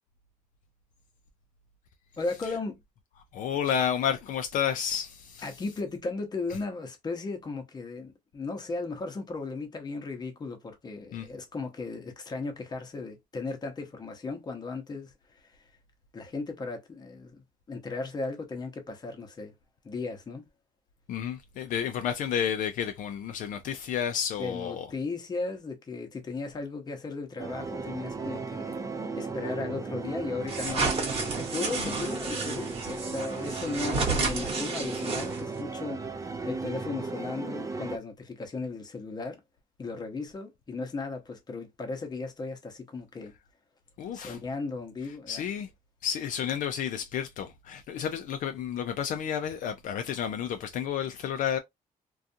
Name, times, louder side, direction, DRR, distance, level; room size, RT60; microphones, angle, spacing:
voice 1, 2.2-2.8 5.4-15.7 16.1-19.5 19.8-20.4 24.4-28.7 29.1-30.9 31.4-39.4 39.8-43.3 44.1-45.4, left 3 dB, 30° left, 0.8 m, -36 dB
voice 2, 3.3-5.4 11.1-11.3 21.1-24.9 44.0-44.4 45.3-45.7 46.0-51.6, left 8 dB, 70° left, 0.4 m, -31 dB
sound 1, 27.4-38.0, right 3 dB, 20° right, 0.4 m, -35 dB
sound 2, 30.5-35.6, right 3 dB, 45° right, 1.1 m, -32 dB
2.4 x 2.3 x 2.6 m
cardioid pair, 125°, 14 cm